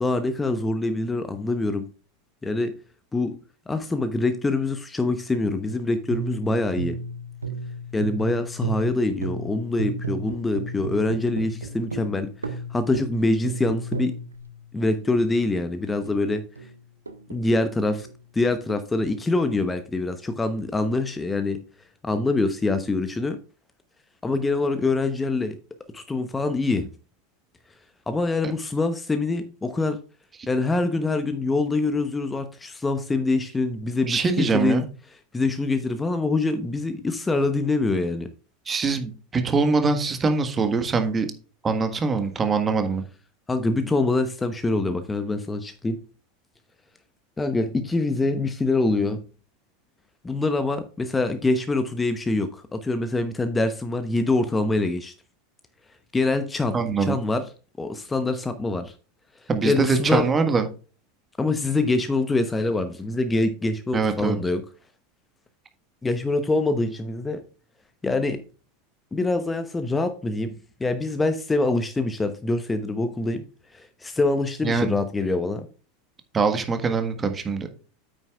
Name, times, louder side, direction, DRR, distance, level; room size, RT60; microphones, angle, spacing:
voice 1, 0.0-1.9 2.4-2.7 3.1-3.4 3.7-7.0 7.9-14.1 14.7-16.4 17.3-18.1 18.3-21.6 22.0-23.4 24.2-25.6 25.9-26.9 28.1-30.0 30.5-34.8 35.3-38.3 43.5-46.0 47.4-49.2 50.2-55.1 56.1-57.4 57.8-58.9 59.6-60.2 61.4-64.6 66.0-67.4 68.0-68.4 69.1-73.4 73.7-75.7, left 2 dB, 15° left, 0.9 m, -25 dB
sound 1, 5.6-15.3 16.0-17.7 18.0-19.6, right 3 dB, 80° right, 0.9 m, -34 dB
voice 2, 34.1-34.8 38.7-41.3 41.6-43.0 56.7-57.2 59.5-60.7 63.9-64.4 74.6-74.9 76.3-77.7, right 4 dB, 20° right, 1.5 m, -23 dB
9.2 x 9.0 x 2.4 m
figure-of-eight pair, 80°, 0 cm